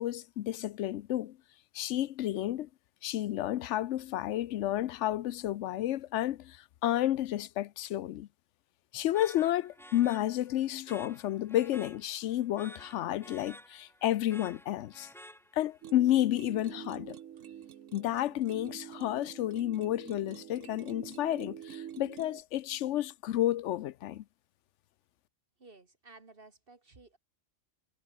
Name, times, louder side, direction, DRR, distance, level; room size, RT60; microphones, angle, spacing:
voice 1, 0.0-1.4 1.7-2.7 3.0-8.3 8.9-15.1 15.5-17.2 17.9-24.2, left 13 dB, 75° left, 0.9 m, -31 dB
sound 1, 9.1-15.9, equal, ahead, 2.3 m, -52 dB
sound 2, 15.8-22.4, right 10 dB, 90° right, 1.2 m, -47 dB
voice 2, 25.6-27.2, right 3 dB, 50° right, 2.3 m, -55 dB
omnidirectional pair, 1.3 m